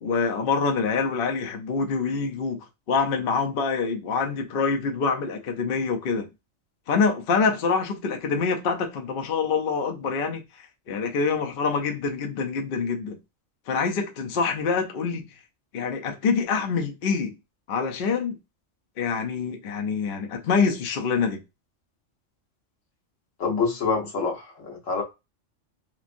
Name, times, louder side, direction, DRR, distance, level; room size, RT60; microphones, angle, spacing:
voice 1, 0.0-6.3 6.9-10.4 10.9-13.2 13.7-15.2 15.7-17.3 17.7-18.4 19.0-21.4, left 5 dB, 55° left, 0.7 m, -25 dB
voice 2, 23.4-25.0, left 4 dB, 85° left, 1.3 m, -26 dB
3.1 x 2.6 x 2.5 m
omnidirectional pair, 1.3 m